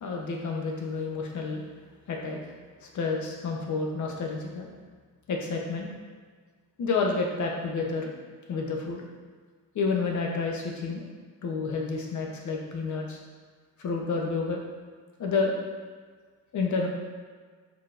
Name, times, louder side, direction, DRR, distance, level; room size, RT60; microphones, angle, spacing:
voice 1, 0.0-1.6 2.1-2.4 2.8-4.7 5.3-5.9 6.8-8.1 8.5-9.0 9.7-11.0 11.4-13.2 13.8-14.6 15.2-15.5 16.5-16.9, left 4 dB, 50° left, 0 dB, 0.9 m, -29 dB
4.6 x 3.8 x 2.5 m, 1.5 s
cardioid pair, 95°, 37 cm